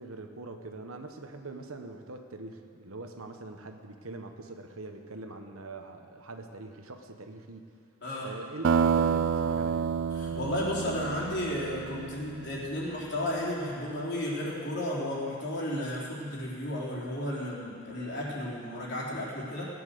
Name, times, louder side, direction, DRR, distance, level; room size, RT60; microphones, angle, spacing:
voice 1, 0.0-7.7 8.2-9.9, right 2 dB, 75° right, 5 dB, 1.2 m, -43 dB
sound 1, 8.6-12.9, right 6 dB, 55° right, 0.4 m, -29 dB
voice 2, 10.1-19.7, left 1 dB, 55° left, -5 dB, 3.6 m, -33 dB
17.0 x 10.0 x 6.7 m, 2.4 s
head